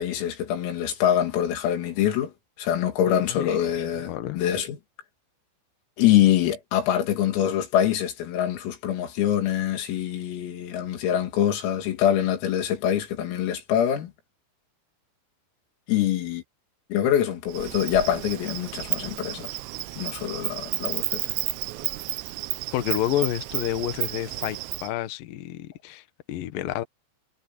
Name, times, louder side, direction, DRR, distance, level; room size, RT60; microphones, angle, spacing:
voice 1, 0.0-2.3 2.6-4.8 6.0-14.1 15.9-16.4 16.9-19.5 20.0-21.2, left 10 dB, 90° left, 5.6 m, -24 dB
voice 2, 3.1-3.5 4.0-4.4 22.7-26.8, left 12 dB, 70° left, 2.1 m, -29 dB
Insect, 17.5-24.9, right 18 dB, 80° right, 2.6 m, -32 dB
omnidirectional pair, 5.9 m